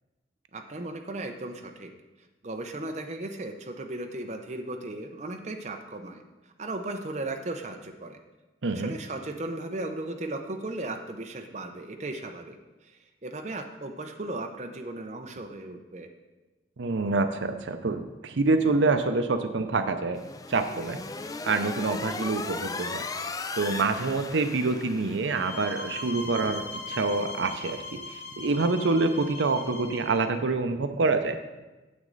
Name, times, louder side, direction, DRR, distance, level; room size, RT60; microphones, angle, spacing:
voice 1, 0.5-1.9 2.4-6.2 6.6-8.2 8.7-12.6 12.8-16.1, right 2 dB, 35° right, 4 dB, 0.7 m, -36 dB
voice 2, 8.6-8.9 16.8-20.2 20.5-21.0 21.5-23.1 23.6-31.4, right 3 dB, 80° right, 8 dB, 0.6 m, -26 dB
sound 1, 20.1-25.7, left 4 dB, 20° left, 0.3 m, -37 dB
sound 2, 25.3-30.2, left 3 dB, 85° left, 2.0 m, -40 dB
9.4 x 7.4 x 3.9 m, 1.1 s
head